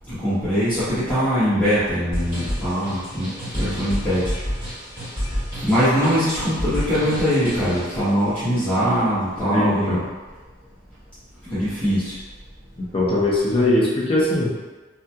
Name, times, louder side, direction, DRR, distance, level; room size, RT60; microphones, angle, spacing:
voice 1, 0.1-4.3 5.6-10.0 11.4-12.1, equal, 5° left, -16 dB, 1.1 m, -22 dB
sound 1, 2.1-8.0, equal, 25° right, 1.4 m, -29 dB
voice 2, 9.4-10.0 12.8-14.5, left 1 dB, 25° left, -6 dB, 0.5 m, -21 dB
2.7 x 2.4 x 2.3 m, 1.3 s
head